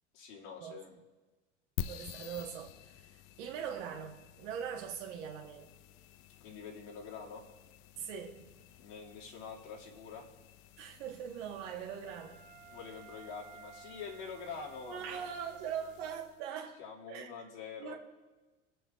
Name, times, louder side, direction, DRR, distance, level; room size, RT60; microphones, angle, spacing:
voice 1, 0.1-1.0 6.4-7.4 8.8-10.2 12.7-15.3 16.8-18.0, left 5 dB, 80° left, 2.5 m, -46 dB
sound 1, 1.8-16.5, left 11 dB, 50° left, 0.5 m, -50 dB
voice 2, 1.9-3.1 3.4-5.7 8.0-8.5 10.8-12.4 14.9-16.8 17.1-17.3 17.8-18.0, right 8 dB, 75° right, 1.6 m, -41 dB
Wind instrument woodwind instrument, 12.0-16.3, right 8 dB, 25° right, 1.9 m, -56 dB
22.0 x 7.7 x 2.5 m
hypercardioid pair, 90°, 35 cm